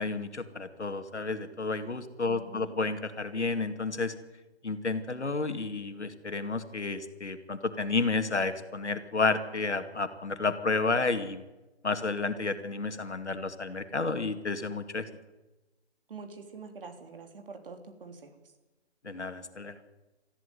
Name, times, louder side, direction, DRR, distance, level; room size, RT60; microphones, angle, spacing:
voice 1, 0.0-4.1 4.6-11.4 11.8-15.1 19.0-19.8, left 3 dB, 85° left, 9 dB, 2.3 m, -31 dB
voice 2, 2.2-2.7 16.1-18.3, right 4 dB, 55° right, 6 dB, 3.4 m, -45 dB
20.5 x 14.5 x 9.4 m, 1.1 s
figure-of-eight pair, 150°, 34 cm